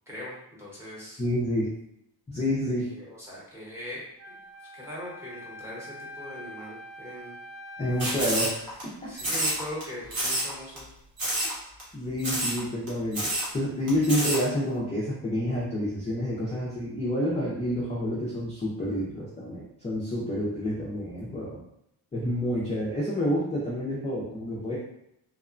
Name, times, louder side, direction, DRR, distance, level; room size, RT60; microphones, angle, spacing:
voice 1, 0.1-1.2 2.9-4.4 4.7-7.4 9.1-10.9, left 1 dB, 5° right, -7 dB, 0.8 m, -41 dB
voice 2, 1.2-1.7 2.3-2.9 7.8-9.3 11.4-11.5 11.9-21.6 22.1-24.8, equal, 15° left, -6 dB, 0.3 m, -29 dB
Wind instrument woodwind instrument, 4.2-8.6, left 1 dB, 75° right, 1.0 m, -44 dB
sound 1, 8.0-8.8 9.2-9.8 10.1-10.5 10.8-10.9 11.2-11.5 11.8-11.9 12.2-12.6 12.9-13.0 13.1-13.5 13.9-14.4, right 1 dB, 50° right, 1.0 m, -28 dB
2.8 x 2.1 x 2.4 m, 0.78 s
wide cardioid pair, 170°, 44 cm